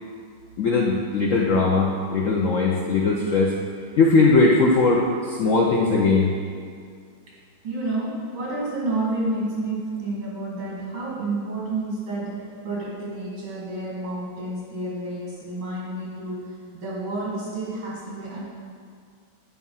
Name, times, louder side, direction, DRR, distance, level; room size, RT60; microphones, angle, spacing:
voice 1, 0.6-3.5 4.0-6.3, left 3 dB, 80° left, -1 dB, 0.7 m, -19 dB
voice 2, 7.6-16.4 16.7-18.4, right 2 dB, 80° right, -6 dB, 3.0 m, -30 dB
8.6 x 4.6 x 5.5 m, 2.1 s
omnidirectional pair, 2.2 m